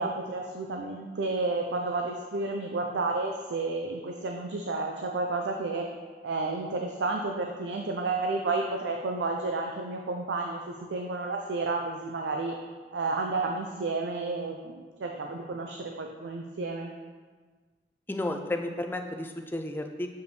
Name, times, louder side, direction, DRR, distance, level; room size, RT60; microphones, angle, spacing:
voice 1, 0.0-5.9 6.2-12.5 12.9-16.9, right 3 dB, 85° right, 2 dB, 0.5 m, -31 dB
voice 2, 18.1-20.1, left 1 dB, 10° left, 5 dB, 0.3 m, -32 dB
7.0 x 5.0 x 3.1 m, 1.5 s
head